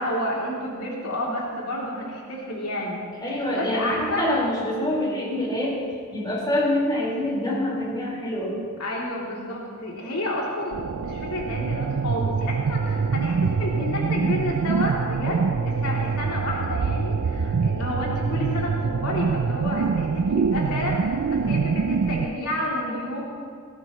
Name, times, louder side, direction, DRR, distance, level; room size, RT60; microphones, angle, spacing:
voice 1, 0.0-3.0 3.3-4.4 8.8-23.2, left 1 dB, 90° left, -4 dB, 3.2 m, -30 dB
voice 2, 3.2-5.8 6.1-8.5, left 1 dB, 20° left, -6 dB, 4.7 m, -25 dB
sound 1, 10.7-22.3, right 5 dB, 70° right, 0.4 m, -25 dB
18.5 x 17.5 x 3.2 m, 2.2 s
head